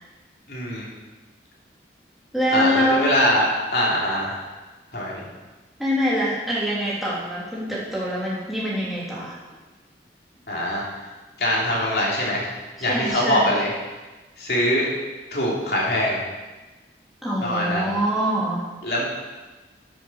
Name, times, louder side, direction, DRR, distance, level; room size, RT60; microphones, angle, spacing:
voice 1, 0.5-0.8 2.5-4.4 4.9-5.2 10.5-10.8 11.4-12.5 12.8-13.7 14.4-14.9 15.3-16.2 17.4-17.9 18.8-19.0, left 1 dB, 60° left, -4 dB, 3.2 m, -23 dB
voice 2, 2.3-3.1 5.8-9.4 12.8-13.5 17.2-18.6, equal, ahead, -8 dB, 3.2 m, -24 dB
13.0 x 7.6 x 6.3 m, 1.2 s
head